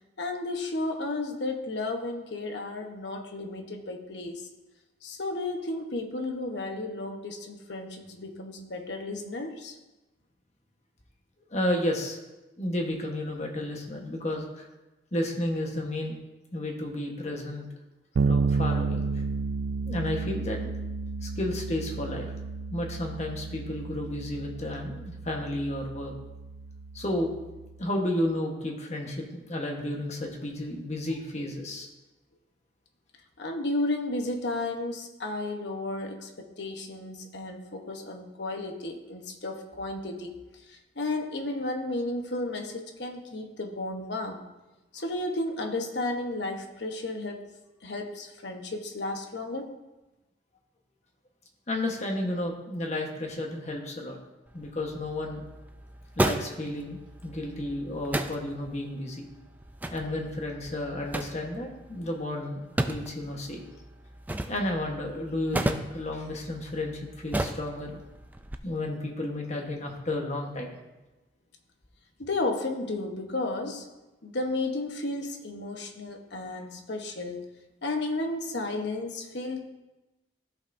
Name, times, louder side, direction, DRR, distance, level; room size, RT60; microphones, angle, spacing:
voice 1, 0.2-4.5 5.0-9.8 33.4-40.4 40.7-44.4 44.9-47.5 47.8-49.8 72.2-73.9 74.2-77.5 77.8-79.7, left 2 dB, 65° left, 4 dB, 1.0 m, -33 dB
voice 2, 11.5-12.2 12.6-14.7 15.1-16.2 16.5-17.7 18.2-19.2 19.9-20.7 21.2-22.3 22.7-26.1 26.9-27.3 27.8-31.9 51.7-54.2 54.5-55.4 56.2-59.3 59.9-62.6 62.9-63.6 64.5-68.0 68.6-70.7, left 1 dB, 35° left, 1 dB, 1.2 m, -32 dB
Bass guitar, 18.2-27.8, right 4 dB, 80° right, 0.4 m, -32 dB
sound 1, 54.5-68.6, right 1 dB, 10° right, 0.3 m, -35 dB
15.0 x 5.6 x 2.7 m, 1.1 s
head